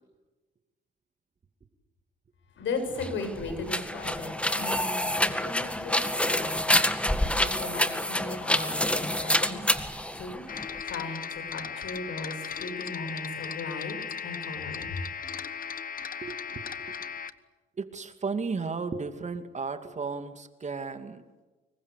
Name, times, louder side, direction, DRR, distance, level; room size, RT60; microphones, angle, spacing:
voice 1, 2.6-6.9 7.4-9.6 10.2-10.4 10.8-14.0 14.2-15.0, left 3 dB, 70° left, 7 dB, 7.2 m, -37 dB
sound 1, 2.9-10.8, left 1 dB, 5° left, 1.9 m, -27 dB
sound 2, 10.5-17.3, left 7 dB, 45° left, 1.3 m, -37 dB
voice 2, 16.2-17.0 17.8-21.4, right 4 dB, 35° right, 8 dB, 2.5 m, -35 dB
26.0 x 22.5 x 8.4 m, 1.2 s
cardioid pair, 90°, 20 cm